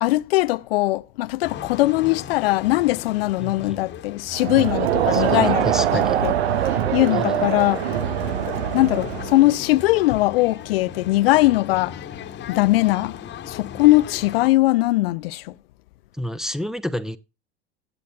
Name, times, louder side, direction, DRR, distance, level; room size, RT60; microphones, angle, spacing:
voice 1, 0.0-6.3 6.6-8.0 8.7-12.0 12.5-13.2 13.5-15.5, left 18 dB, 65° left, 0.5 m, -20 dB
sound 1, 1.4-14.5, left 9 dB, 35° left, 1.1 m, -37 dB
voice 2, 3.4-3.8 5.1-6.2 7.1-7.4 16.2-17.2, equal, ahead, 0.6 m, -30 dB
Crowd, 4.3-9.5, right 10 dB, 75° right, 0.7 m, -23 dB
16.5 x 9.0 x 2.2 m
figure-of-eight pair, 80°, 32 cm